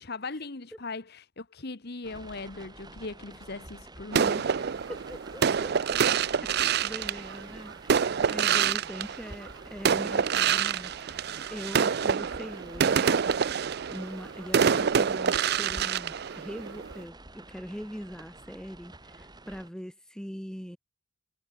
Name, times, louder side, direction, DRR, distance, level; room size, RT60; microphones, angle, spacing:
voice 1, 0.0-4.5, left 3 dB, 50° left, 1.3 m, -39 dB
sound 1, 2.0-19.7, right 2 dB, 20° right, 5.0 m, -49 dB
sound 2, 4.1-9.5 9.9-17.0, right 7 dB, 50° right, 0.5 m, -26 dB
voice 2, 4.9-6.0 6.4-13.2 13.9-20.8, equal, 5° left, 2.3 m, -42 dB
Fowl, 8.2-17.1, right 5 dB, 85° right, 4.1 m, -57 dB
head